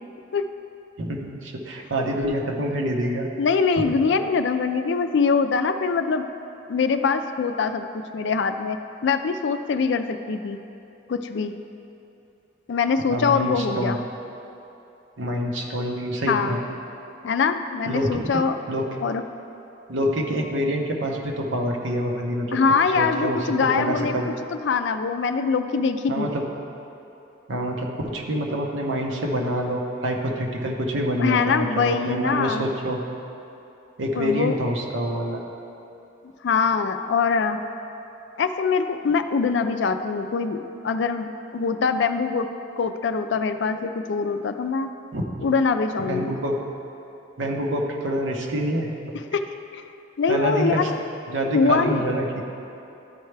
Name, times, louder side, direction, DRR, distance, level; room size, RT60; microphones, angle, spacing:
voice 1, 1.0-3.3 3.8-3.9 13.1-14.0 15.2-16.6 17.9-18.3 18.7-18.9 19.9-22.6 22.9-24.3 26.1-26.4 27.5-33.0 34.0-35.4 45.1-45.2 46.0-46.6 47.4-49.2 50.3-50.9 51.3-52.4, equal, 80° right, 0 dB, 0.9 m, -26 dB
voice 2, 3.4-6.3 6.7-7.9 8.1-8.8 9.0-10.6 11.1-11.5 12.7-14.0 16.3-16.6 17.2-18.6 19.0-19.2 22.5-24.2 24.6-26.3 31.2-32.7 34.1-34.6 36.4-37.6 38.4-42.5 42.8-44.9 45.4-46.4 49.3-49.4 49.7-49.8 50.2-50.9 51.5-52.2, left 5 dB, 65° left, 9 dB, 0.4 m, -23 dB
12.0 x 4.5 x 3.3 m, 2.9 s
head